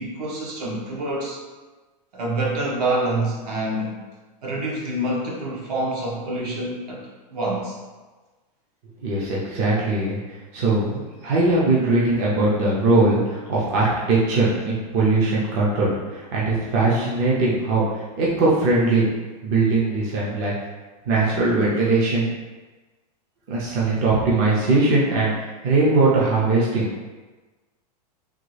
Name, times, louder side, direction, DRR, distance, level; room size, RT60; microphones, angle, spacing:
voice 1, 0.0-1.4 2.1-4.0 4.4-7.0 7.3-7.8, right 1 dB, 70° right, -2 dB, 1.0 m, -26 dB
voice 2, 9.0-10.2 10.5-19.0 19.4-20.5 21.1-22.3 23.5-26.9, right 2 dB, 25° right, -6 dB, 0.4 m, -20 dB
3.5 x 2.3 x 3.1 m, 1.2 s
supercardioid pair, 180°, 21 cm